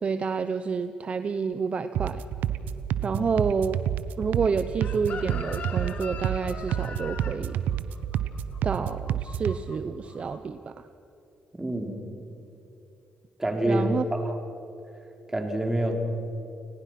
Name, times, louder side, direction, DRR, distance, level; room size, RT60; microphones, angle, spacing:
voice 1, 0.0-2.2 3.0-3.8 4.2-7.6 8.6-10.9 13.7-14.3, right 5 dB, 45° right, 11 dB, 0.8 m, -29 dB
sound 1, 1.9-9.6, right 10 dB, 80° right, 0.9 m, -29 dB
Chicken rooster, 4.8-9.8 10.0-10.4, left 5 dB, 55° left, 2.4 m, -41 dB
voice 2, 11.5-12.1 13.4-14.3 15.3-15.9, right 1 dB, 15° right, 3 dB, 3.9 m, -27 dB
29.5 x 18.5 x 6.0 m, 2.8 s
cardioid pair, 75°, 3 cm